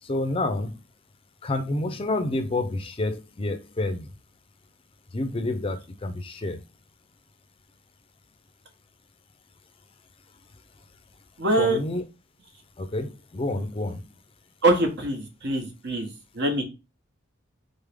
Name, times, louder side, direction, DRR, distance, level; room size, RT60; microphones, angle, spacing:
voice 1, 0.0-0.7 1.4-4.1 5.1-6.6 11.6-12.0 12.8-14.1, left 2 dB, 25° left, 0.5 m, -29 dB
voice 2, 11.4-11.8 14.6-16.1 16.3-16.6, right 2 dB, 60° right, 1.1 m, -23 dB
3.9 x 3.6 x 3.4 m
head